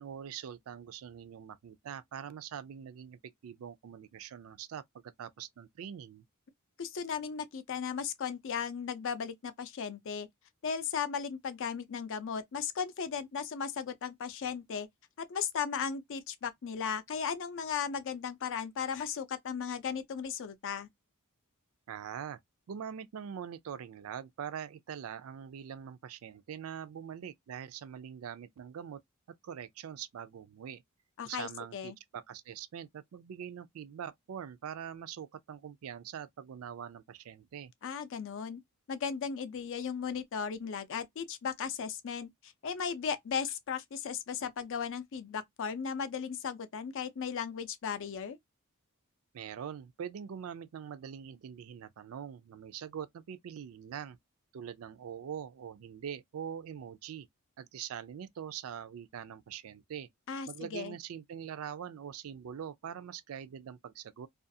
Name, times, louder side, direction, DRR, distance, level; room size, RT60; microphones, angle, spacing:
voice 1, 0.0-6.2 21.9-22.4 22.7-29.0 29.3-30.8 31.2-37.7 49.3-54.2 54.5-57.3 57.6-60.1 60.5-64.3, right 8 dB, 70° right, 0.4 m, -43 dB
voice 2, 6.8-10.3 10.6-14.9 15.2-20.9 31.2-31.9 37.8-38.6 38.9-48.4 60.3-61.0, left 6 dB, 60° left, 0.4 m, -36 dB
2.4 x 2.3 x 2.6 m
head